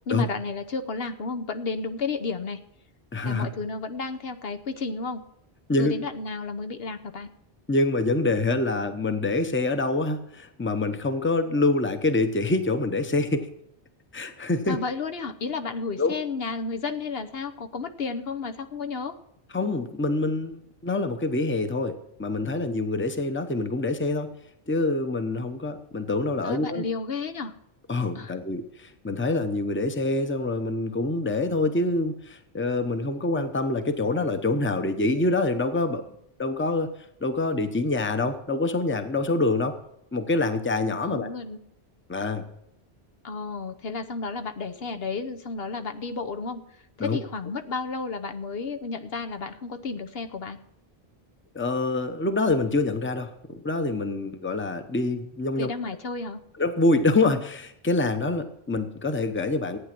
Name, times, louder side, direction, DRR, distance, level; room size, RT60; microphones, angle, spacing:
voice 1, 0.1-2.6 3.2-5.2 5.7-7.3 14.7-19.1 26.4-27.5 28.1-28.4 41.0-41.6 43.2-46.6 47.0-50.6 55.6-56.4, left 4 dB, 70° left, 7 dB, 1.1 m, -32 dB
voice 2, 3.1-3.5 5.7-5.9 7.7-13.5 14.1-14.8 16.0-16.1 19.5-24.3 24.7-26.8 27.9-36.0 36.4-36.9 37.2-39.8 40.1-41.3 42.1-42.5 47.0-47.2 51.5-55.7 56.6-59.8, left 2 dB, 10° left, 8 dB, 0.8 m, -26 dB
14.5 x 9.3 x 6.0 m, 0.73 s
omnidirectional pair, 1.1 m